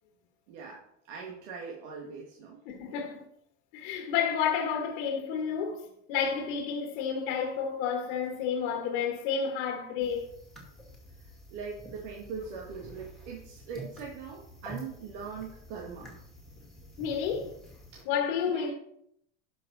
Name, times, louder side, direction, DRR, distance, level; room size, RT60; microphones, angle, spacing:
voice 1, 0.5-2.6 2.9-3.0 10.1-10.2 11.2-16.2 17.9-18.1 18.5-18.7, right 5 dB, 70° right, 2.0 m, -41 dB
voice 2, 2.7-3.2 3.7-10.3 17.0-17.5 18.1-18.7, left 7 dB, 65° left, 1.8 m, -30 dB
sound 1, 10.0-18.0, right 1 dB, ahead, 2.3 m, -49 dB
11.5 x 5.6 x 4.1 m
supercardioid pair, 140°, 36 cm